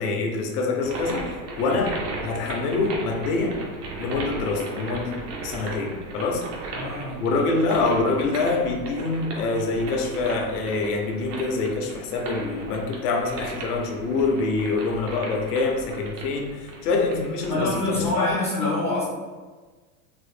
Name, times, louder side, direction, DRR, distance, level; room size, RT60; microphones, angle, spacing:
voice 1, 0.0-2.0 2.2-3.6 4.0-6.4 7.2-18.4, left 3 dB, 75° left, 2 dB, 0.8 m, -25 dB
sound 1, 0.8-18.3, right 3 dB, 85° right, 0.9 m, -37 dB
voice 2, 6.7-7.2 17.5-19.0, left 2 dB, 15° left, -7 dB, 0.4 m, -26 dB
3.9 x 2.1 x 3.2 m, 1.4 s
supercardioid pair, 150°, 46 cm